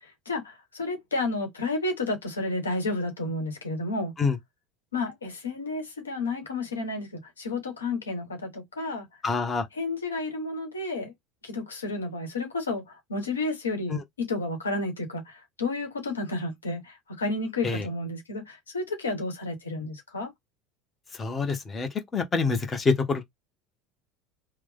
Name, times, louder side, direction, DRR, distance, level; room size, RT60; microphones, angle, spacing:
voice 1, 0.0-4.2 4.9-9.1 9.8-11.1 11.4-14.0 14.3-20.3, left 2 dB, 85° left, 1.1 m, -31 dB
voice 2, 9.2-9.7 13.9-14.0 17.6-17.9 21.1-23.2, left 4 dB, 25° left, 1.1 m, -26 dB
3.3 x 2.2 x 3.4 m
figure-of-eight pair, 75°, 0 cm